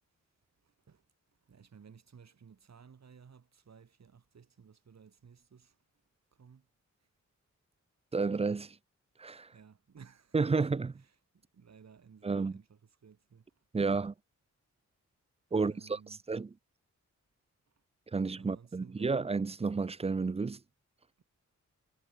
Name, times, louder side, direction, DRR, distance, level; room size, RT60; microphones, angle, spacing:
voice 1, 0.6-1.1 1.4-5.8 6.3-6.7 9.5-10.7 10.9-13.6 15.5-16.2 18.3-19.2 21.2-21.3, right 6 dB, 60° right, 7.3 m, -57 dB
voice 2, 8.1-8.8 9.2-9.5 10.3-10.9 12.2-12.5 13.7-14.1 15.5-16.0 16.3-16.5 18.1-20.6, right 4 dB, 20° right, 0.5 m, -31 dB
wide cardioid pair, 105°, 30 cm